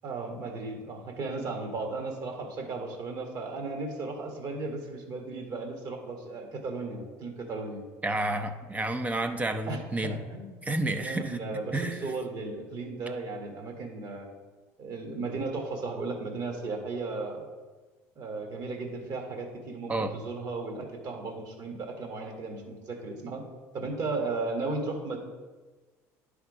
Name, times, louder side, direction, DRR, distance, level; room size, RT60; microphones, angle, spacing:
voice 1, 0.0-7.8 9.7-10.6 11.0-14.3 14.8-17.4 18.2-23.4 23.7-25.2, right 3 dB, 50° right, 2 dB, 1.7 m, -35 dB
voice 2, 8.0-10.2 10.6-11.4 11.7-12.1 19.9-20.2, right 2 dB, 20° right, 7 dB, 0.6 m, -30 dB
10.0 x 3.6 x 4.8 m, 1.3 s
supercardioid pair, 90°, 8 cm